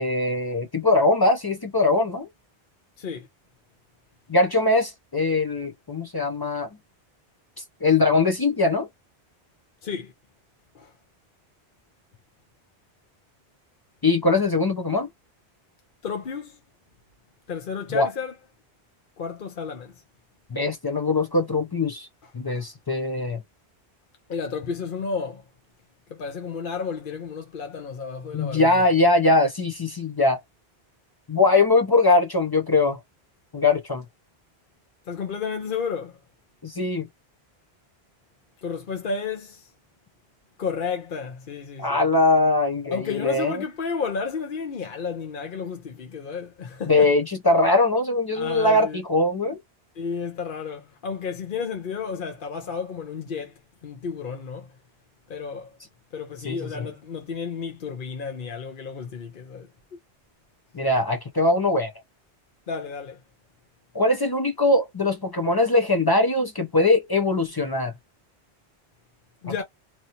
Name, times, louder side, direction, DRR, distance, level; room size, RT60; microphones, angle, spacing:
voice 1, 0.0-2.3 4.3-6.7 7.8-8.9 14.0-15.1 17.9-18.1 20.5-22.1 22.3-23.4 28.3-30.4 31.3-33.0 33.5-34.0 36.6-37.1 41.8-43.6 46.9-49.6 56.4-56.9 60.7-61.9 63.9-67.9, left 2 dB, 40° left, 0.3 m, -21 dB
voice 2, 9.8-10.1 10.7-10.9 16.0-16.6 17.5-18.3 19.2-19.9 22.2-22.3 22.5-22.6 24.3-25.4 26.1-28.8 35.1-36.2 38.6-39.7 40.6-42.0 42.9-47.1 48.3-49.0 50.0-54.7 55.3-55.8 56.1-59.7 62.7-63.2 69.4-69.6, left 5 dB, 55° left, 0.9 m, -32 dB
2.9 x 2.7 x 2.7 m
omnidirectional pair, 1.1 m